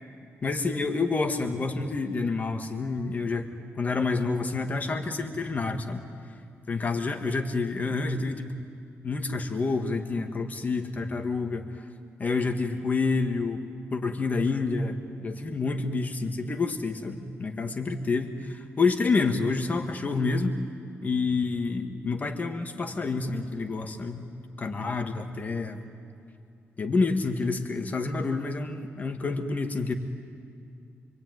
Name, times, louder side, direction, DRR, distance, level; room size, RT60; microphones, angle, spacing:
voice 1, 0.4-3.5 3.8-6.0 6.7-8.5 9.0-11.9 12.2-13.6 13.9-20.5 21.0-24.3 24.6-25.8 26.8-29.9, left 3 dB, 35° left, 5 dB, 1.9 m, -28 dB
26.5 x 23.5 x 9.5 m, 2.5 s
cardioid pair, 115°, 5 cm